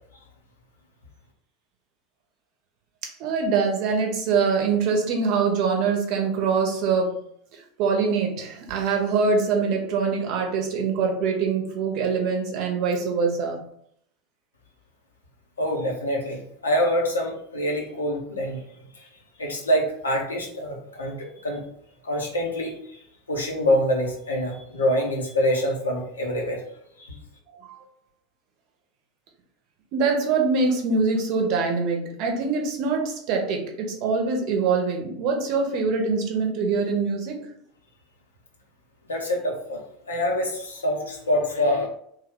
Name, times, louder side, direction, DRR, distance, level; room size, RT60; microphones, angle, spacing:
voice 1, 3.2-7.2 7.5-13.6 27.7-27.8 29.9-37.5, right 5 dB, 50° right, 2 dB, 0.8 m, -24 dB
voice 2, 15.6-18.6 19.4-21.6 22.0-23.0 23.3-26.6 27.0-27.1 39.1-39.8 40.1-41.9, equal, 80° left, 0 dB, 0.7 m, -25 dB
3.1 x 2.3 x 3.6 m, 0.68 s
figure-of-eight pair, 80°, 0 cm